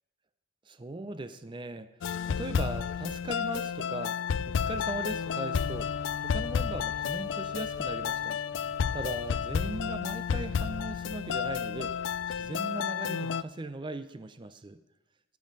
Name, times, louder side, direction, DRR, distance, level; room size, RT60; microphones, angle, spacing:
voice 1, 0.7-1.9 2.3-4.2 4.5-5.9 6.2-8.4 8.9-14.8, right 2 dB, 25° right, 12 dB, 0.5 m, -39 dB
sound 1, 2.0-13.4, left 7 dB, 75° left, 0.3 m, -31 dB
sound 2, 4.1-4.3 6.4-6.5 7.0-12.4, equal, 75° right, 3.7 m, -55 dB
11.5 x 7.7 x 5.3 m, 0.96 s
head